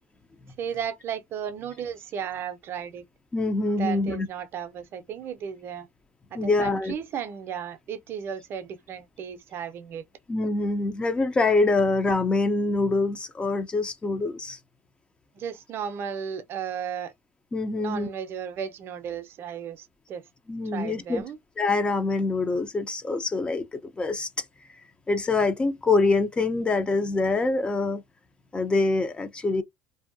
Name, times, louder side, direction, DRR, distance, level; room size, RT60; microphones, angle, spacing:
voice 1, 0.6-3.0 3.8-5.9 6.3-10.0 15.3-17.1 17.8-20.2 20.7-21.4, right 8 dB, 45° right, 0.5 m, -34 dB
voice 2, 3.3-4.3 6.3-6.9 10.3-14.6 17.5-18.1 20.5-21.2 21.6-23.6 24.0-24.4 25.1-28.0 28.5-29.6, left 3 dB, 20° left, 0.4 m, -25 dB
2.6 x 2.2 x 2.5 m
supercardioid pair, 100°, 5 cm